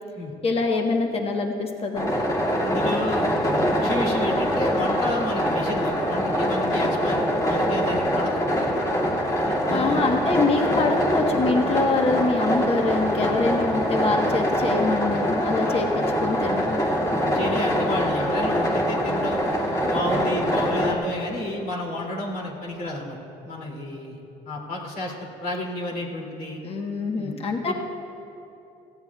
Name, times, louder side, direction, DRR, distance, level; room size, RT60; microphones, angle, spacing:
voice 1, 0.4-2.1 9.7-16.8 26.6-27.7, left 3 dB, 35° left, 2 dB, 1.2 m, -24 dB
sound 1, 1.9-20.9, equal, 20° left, 2.3 m, -24 dB
voice 2, 2.6-7.2 7.4-8.4 9.4-10.1 15.6-15.8 17.2-19.4 19.7-23.2 23.4-24.2 24.4-26.6 27.1-27.3 27.6-27.7, left 1 dB, 60° left, -2 dB, 2.7 m, -31 dB
18.0 x 15.5 x 2.4 m, 2.8 s
cardioid pair, 110°, 17 cm